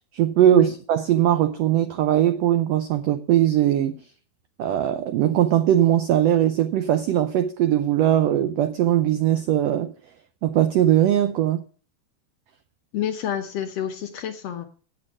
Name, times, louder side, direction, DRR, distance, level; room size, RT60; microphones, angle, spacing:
voice 1, 0.1-3.9 4.6-9.9 10.4-11.6, right 11 dB, 85° right, 1.4 m, -20 dB
voice 2, 12.9-14.7, left 9 dB, 65° left, 1.7 m, -29 dB
8.1 x 7.6 x 7.2 m
omnidirectional pair, 3.6 m